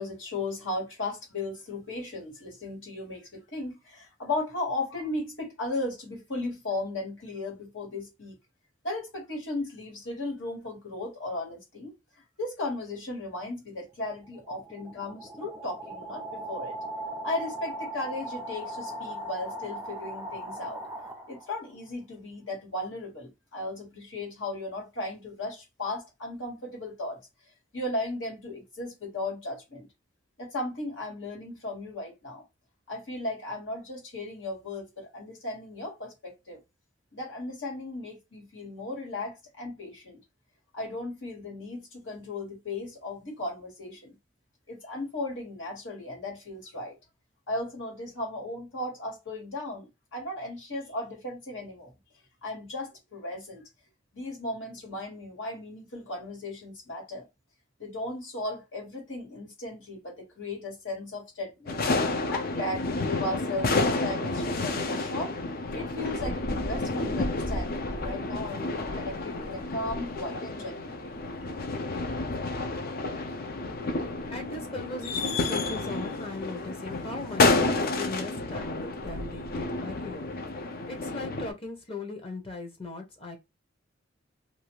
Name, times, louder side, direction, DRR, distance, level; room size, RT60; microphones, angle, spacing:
voice 1, 0.0-8.3 8.8-11.9 12.4-16.8 17.2-20.8 21.3-27.2 27.7-29.9 30.4-32.4 32.9-36.6 37.1-40.2 40.7-44.2 44.7-47.0 47.5-51.9 52.4-53.6 54.1-57.2 57.8-61.9 62.3-65.3 65.7-71.2, left 2 dB, 85° left, 1.7 m, -36 dB
sound 1, 13.9-21.7, right 1 dB, 10° right, 0.4 m, -38 dB
sound 2, 61.7-81.5, left 2 dB, 50° left, 0.5 m, -30 dB
voice 2, 73.8-83.4, left 3 dB, 30° left, 0.8 m, -39 dB
2.6 x 2.4 x 3.0 m
head